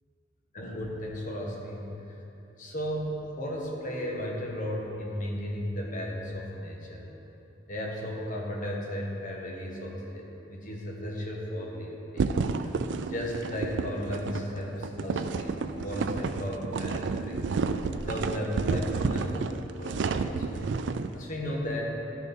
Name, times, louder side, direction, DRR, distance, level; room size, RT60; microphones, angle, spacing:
voice 1, 0.5-1.9 2.6-7.0 7.7-12.3 12.6-12.7 13.1-19.5 19.8-20.6 21.1-21.8, equal, 45° left, -1 dB, 1.4 m, -35 dB
sound 1, 12.2-21.1, right 4 dB, 70° right, 0.4 m, -30 dB
11.5 x 6.8 x 4.4 m, 3.0 s
head